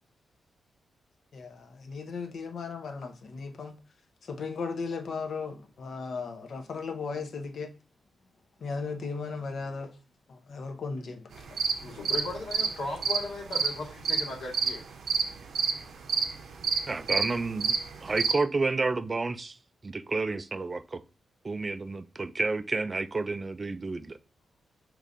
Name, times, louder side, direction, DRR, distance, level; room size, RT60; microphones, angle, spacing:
voice 1, 1.3-3.8 4.3-7.7 8.6-9.9 10.3-11.2, left 4 dB, 60° left, 0.7 m, -36 dB
sound 1, 11.3-18.3, right 6 dB, 70° right, 0.6 m, -29 dB
voice 2, 11.8-14.8, left 2 dB, 85° left, 1.7 m, -37 dB
voice 3, 16.9-17.8 18.0-19.5 19.8-21.0 21.4-24.1, right 3 dB, 30° right, 0.3 m, -30 dB
6.6 x 3.1 x 2.5 m
wide cardioid pair, 130°, 0 cm